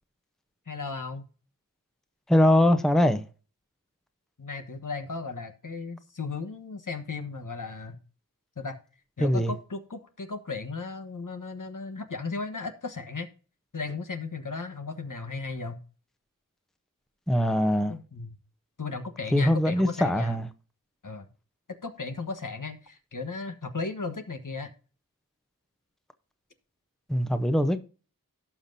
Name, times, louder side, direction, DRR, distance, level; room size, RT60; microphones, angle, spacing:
voice 1, 0.7-1.2 4.4-8.0 8.6-8.8 9.2-13.3 13.7-15.8 17.9-18.4 18.8-20.4 21.0-21.3 21.7-24.7, left 4 dB, 65° left, 1.3 m, -36 dB
voice 2, 2.3-3.3 9.2-9.5 17.3-17.9 19.3-20.5 27.1-27.8, left 1 dB, ahead, 0.8 m, -22 dB
17.0 x 5.9 x 2.7 m
wide cardioid pair, 50°, 34 cm